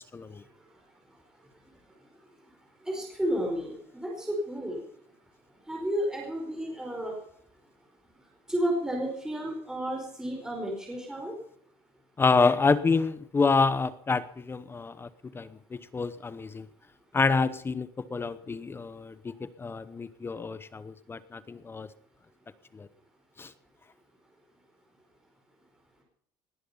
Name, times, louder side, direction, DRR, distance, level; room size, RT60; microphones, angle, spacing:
voice 1, 2.8-4.8 5.7-7.2 8.5-11.3, equal, 5° right, -1 dB, 4.9 m, -31 dB
voice 2, 12.2-15.1 15.3-16.7 17.1-21.9 22.7-22.9 23.4-23.5, left 4 dB, 25° left, 16 dB, 0.8 m, -28 dB
20.0 x 11.0 x 5.6 m, 0.65 s
cardioid pair, 110°, 10 cm